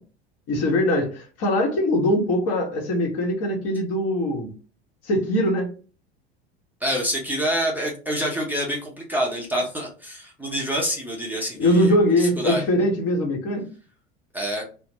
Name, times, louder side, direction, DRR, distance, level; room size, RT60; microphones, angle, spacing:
voice 1, 0.5-4.5 5.1-5.7 11.6-13.6, left 1 dB, 45° left, 1 dB, 1.1 m, -22 dB
voice 2, 6.8-12.6 14.3-14.6, equal, 5° right, -3 dB, 0.7 m, -27 dB
2.4 x 2.3 x 3.0 m, 0.37 s
hypercardioid pair, 85°, 32 cm